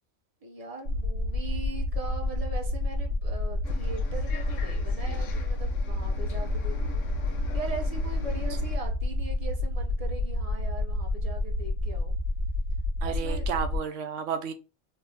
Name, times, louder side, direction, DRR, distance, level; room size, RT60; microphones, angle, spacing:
voice 1, 0.4-12.1 13.0-13.5, right 3 dB, 35° right, 0.8 m, -40 dB
sound 1, 0.8-13.8, left 2 dB, 50° right, 1.6 m, -29 dB
Bus, 3.6-8.8, left 5 dB, 80° left, 1.0 m, -42 dB
voice 2, 13.0-14.5, right 7 dB, 80° right, 1.0 m, -32 dB
3.4 x 2.7 x 3.3 m
omnidirectional pair, 1.3 m